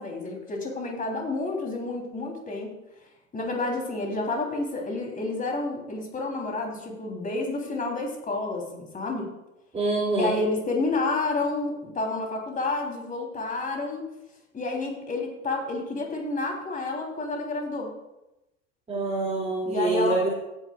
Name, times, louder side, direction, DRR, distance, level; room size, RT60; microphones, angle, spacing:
voice 1, 0.0-2.7 3.3-9.3 10.2-14.1 14.5-17.9 19.6-20.2, left 2 dB, 20° left, 1 dB, 3.4 m, -29 dB
voice 2, 9.7-10.4 18.9-20.3, right 2 dB, 15° right, -5 dB, 2.7 m, -25 dB
17.5 x 9.9 x 2.4 m, 0.92 s
hypercardioid pair, 85°, 38 cm